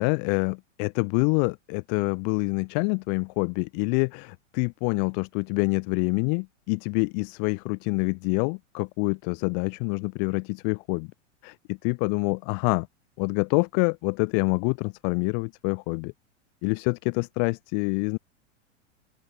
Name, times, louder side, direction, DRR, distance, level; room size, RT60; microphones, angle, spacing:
voice 1, 0.0-11.1 11.4-12.9 13.2-16.1 16.6-18.2, left 40 dB or more, 50° left, 5.7 m, -26 dB
open air
hypercardioid pair, 125°, 37 cm